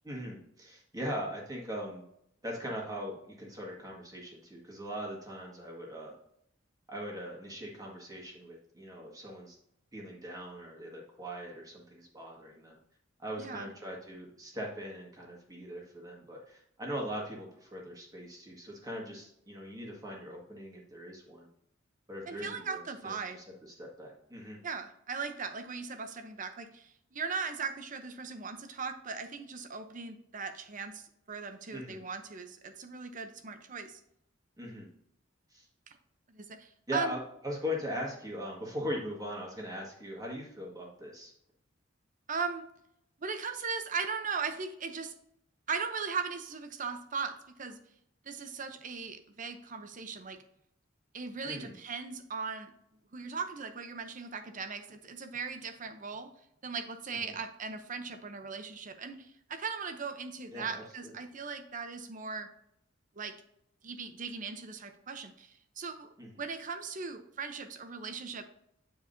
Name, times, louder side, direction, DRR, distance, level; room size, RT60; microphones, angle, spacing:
voice 1, 0.0-2.0 2.4-6.2 6.9-9.6 9.9-12.8 13.2-21.5 22.1-24.6 31.7-32.0 34.6-34.9 35.5-35.7 36.9-41.3 51.4-51.8 57.1-57.4 60.5-61.1 66.2-66.4, equal, 20° right, -2 dB, 1.7 m, -40 dB
voice 2, 13.4-13.7 22.3-23.4 24.6-34.0 35.9-36.0 36.3-37.2 42.3-42.6 43.2-45.1 45.7-47.8 48.2-50.4 51.1-52.7 53.1-56.3 56.6-62.5 63.2-63.3 63.8-66.1 66.4-68.4, right 5 dB, 40° right, 8 dB, 0.7 m, -38 dB
9.0 x 4.7 x 2.7 m, 0.75 s
head